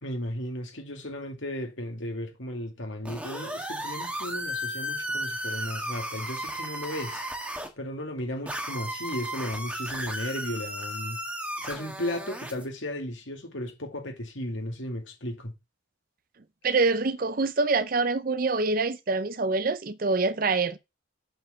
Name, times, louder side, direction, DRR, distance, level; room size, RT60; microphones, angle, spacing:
voice 1, 0.0-7.2 7.8-11.2 11.6-15.5, left 1 dB, 70° left, 2.3 m, -35 dB
sound 1, 3.0-7.7 8.5-12.6, equal, 5° right, 1.5 m, -34 dB
voice 2, 16.6-20.8, right 3 dB, 45° right, 0.6 m, -25 dB
7.8 x 4.7 x 6.3 m
head